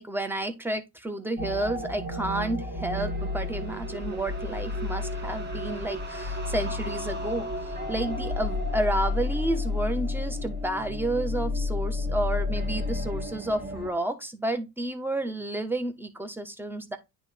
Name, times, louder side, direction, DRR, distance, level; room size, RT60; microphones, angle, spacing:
voice 1, 0.0-17.0, right 1 dB, 5° right, 1.3 m, -31 dB
sound 1, 1.4-13.9, left 2 dB, 30° right, 2.0 m, -31 dB
9.8 x 3.5 x 3.5 m
cardioid pair, 80°, 36 cm